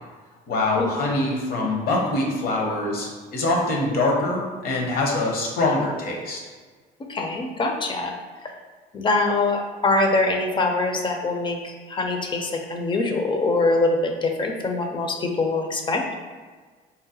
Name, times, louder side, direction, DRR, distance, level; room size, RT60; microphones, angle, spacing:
voice 1, 0.5-6.4, left 2 dB, 60° left, -1 dB, 0.7 m, -24 dB
voice 2, 7.0-8.1 8.4-8.5 8.9-16.0, left 2 dB, 30° left, 3 dB, 0.4 m, -23 dB
3.8 x 2.0 x 2.7 m, 1.4 s
cardioid pair, 110°, 17 cm